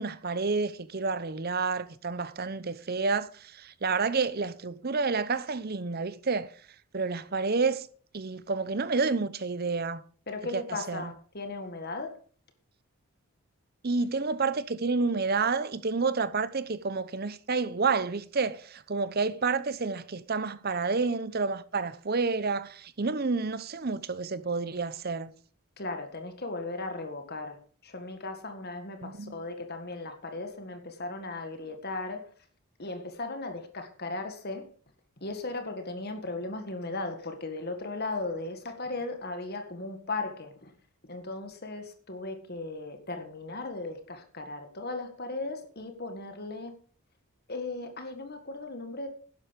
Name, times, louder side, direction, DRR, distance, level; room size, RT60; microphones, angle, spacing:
voice 1, 0.0-3.3 3.6-6.5 6.9-7.8 8.1-10.0 10.5-10.6 10.9-11.0 13.8-25.3 29.0-29.3, right 4 dB, 45° right, 0.8 m, -29 dB
voice 2, 10.3-12.2 25.8-32.3 32.8-34.7 35.2-40.7 41.0-46.7 47.5-49.1, left 2 dB, 45° left, 1.8 m, -37 dB
11.5 x 10.5 x 5.2 m
head